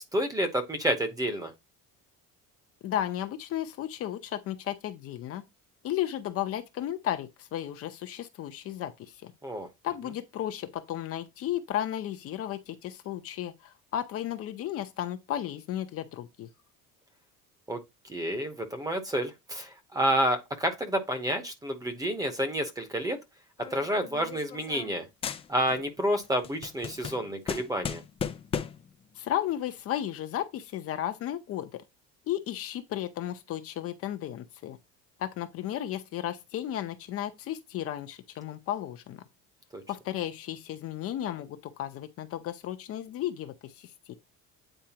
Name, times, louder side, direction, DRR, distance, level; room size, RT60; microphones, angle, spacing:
voice 1, 0.1-1.5 9.4-9.7 17.7-17.8 18.1-23.2 23.7-25.0 25.5-28.0 39.7-39.8, right 1 dB, 10° right, 0.9 m, -29 dB
voice 2, 2.8-5.4 5.8-9.3 9.8-16.5 29.1-31.8 32.3-34.8 35.2-39.2 39.9-44.1, left 11 dB, 40° left, 0.7 m, -34 dB
sound 1, 23.6-25.0 25.2-25.9 26.2-28.9, left 7 dB, 20° left, 0.3 m, -36 dB
9.0 x 4.5 x 2.9 m
cardioid pair, 180°, 34 cm